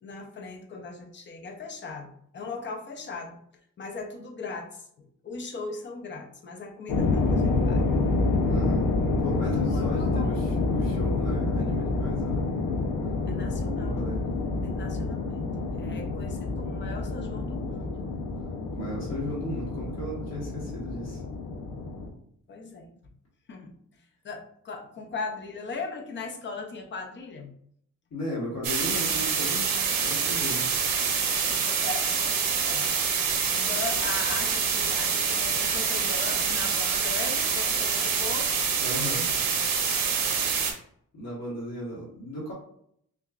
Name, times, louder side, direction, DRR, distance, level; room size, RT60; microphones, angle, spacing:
voice 1, 0.0-3.4 3.8-8.0 9.5-10.5 13.3-14.2 14.6-15.4 15.7-18.1 22.5-22.9 23.5-23.7 24.2-27.5 31.5-32.9 33.5-38.5, left 4 dB, 35° left, 3 dB, 0.6 m, -39 dB
sound 1, 6.9-22.1, left 3 dB, 75° left, 0.7 m, -28 dB
voice 2, 8.4-8.9 9.2-12.5 13.7-14.2 18.7-21.2 28.1-30.8 38.8-39.3 41.1-42.5, equal, 50° left, -7 dB, 1.2 m, -35 dB
sound 2, 28.6-40.7, right 6 dB, 90° right, 0.8 m, -26 dB
5.9 x 2.3 x 2.4 m, 0.67 s
wide cardioid pair, 180°, 33 cm